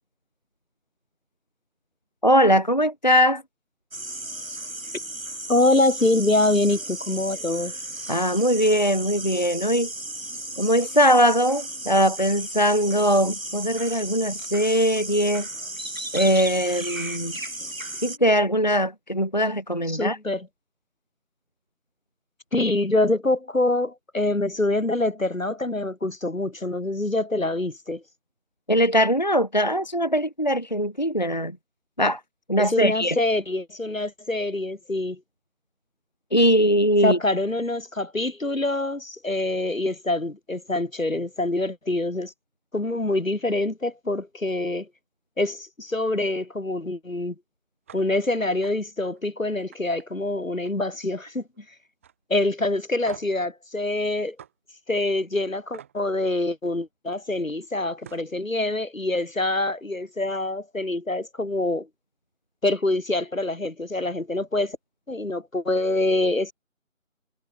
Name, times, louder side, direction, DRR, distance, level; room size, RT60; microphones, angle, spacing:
voice 1, 2.2-3.4 8.1-9.9 10.6-15.5 16.1-17.3 18.0-20.2 28.7-31.6 32.0-32.2 32.5-33.2 36.3-37.2, equal, 35° left, 0.7 m, -21 dB
sound 1, 3.9-18.2, right 2 dB, 75° right, 5.2 m, -35 dB
voice 2, 5.5-7.7 19.9-20.5 22.5-28.0 32.6-35.2 37.0-42.3 42.7-44.9 45.4-47.4 47.9-51.4 52.3-54.4 54.9-61.9 62.6-64.8 65.1-66.5, left 2 dB, 75° left, 3.7 m, -25 dB
sound 2, 47.9-48.0 48.4-48.7 49.1-49.3 49.7-50.9 51.2-51.6 52.0-52.1 53.1-53.4 54.4-54.5 55.7-56.0 57.6-57.7 58.0-58.3, right 9 dB, 10° right, 3.1 m, -45 dB
figure-of-eight pair, 165°, 41 cm